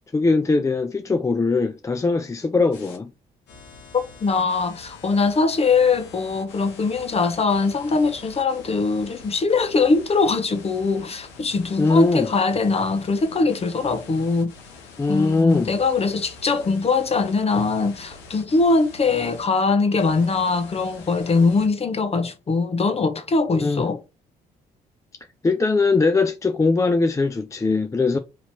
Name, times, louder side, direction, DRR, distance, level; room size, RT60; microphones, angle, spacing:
voice 1, 0.1-3.1 11.8-12.3 15.0-15.7 23.6-23.9 25.4-28.2, left 3 dB, 20° left, 0.4 m, -21 dB
sound 1, 2.7-3.0 3.5-19.5 20.0-21.7, left 4 dB, 90° left, 0.9 m, -45 dB
voice 2, 3.9-14.5 15.1-24.0, left 4 dB, 35° left, 0.9 m, -22 dB
3.0 x 2.8 x 4.3 m
supercardioid pair, 60°, 17 cm